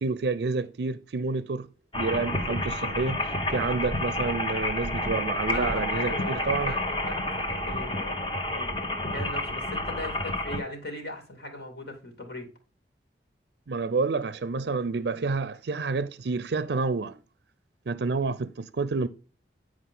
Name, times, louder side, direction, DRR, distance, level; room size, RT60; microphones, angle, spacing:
voice 1, 0.0-1.7 1.9-6.7 13.7-17.2 17.9-19.1, right 4 dB, 70° right, 0.5 m, -29 dB
sound 1, 1.9-10.6, left 1 dB, 30° left, 1.1 m, -30 dB
voice 2, 5.5-12.5, left 1 dB, 75° left, 2.7 m, -39 dB
10.0 x 4.8 x 3.8 m
head